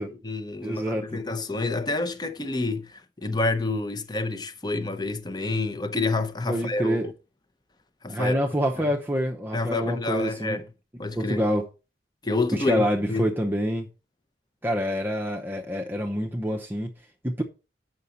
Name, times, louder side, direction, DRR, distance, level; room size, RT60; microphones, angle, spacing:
voice 1, 0.0-7.0 8.0-8.4 8.8-8.9 9.5-10.7 11.0-11.4 12.2-13.3, left 3 dB, 25° left, 0.7 m, -28 dB
voice 2, 0.6-1.2 6.5-7.1 8.1-10.6 11.2-11.7 12.5-13.9 14.6-16.9 17.2-17.4, equal, 10° right, 0.7 m, -26 dB
8.2 x 5.8 x 4.1 m
head